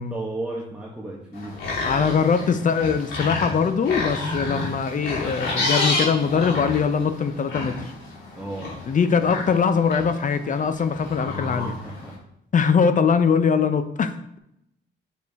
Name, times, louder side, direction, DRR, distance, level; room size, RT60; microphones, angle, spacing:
voice 1, 0.1-1.6 8.3-8.8 11.8-12.2, right 2 dB, 5° right, -4 dB, 1.5 m, -33 dB
sound 1, 1.3-12.1, left 2 dB, 75° left, 3.0 m, -30 dB
voice 2, 1.8-7.8 8.9-11.8 12.5-14.4, left 6 dB, 40° left, 10 dB, 0.7 m, -22 dB
7.0 x 6.2 x 3.6 m, 0.80 s
cardioid pair, 90°, 20 cm